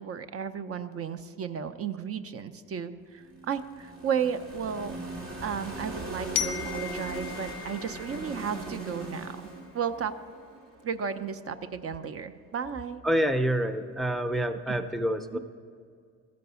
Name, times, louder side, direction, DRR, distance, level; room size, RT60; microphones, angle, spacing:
voice 1, 0.0-5.0 5.4-9.4 9.7-10.1 10.8-13.0 14.7-14.8 15.3-15.4, right 7 dB, 50° right, 10 dB, 0.6 m, -34 dB
sound 1, 3.2-11.2, right 2 dB, 70° right, 2.2 m, -40 dB
Glockenspiel, 6.4-9.2, left 11 dB, 85° left, 0.5 m, -36 dB
voice 2, 13.0-15.4, right 1 dB, ahead, 9 dB, 0.5 m, -27 dB
14.5 x 5.2 x 6.8 m, 2.2 s
cardioid pair, 90°, 30 cm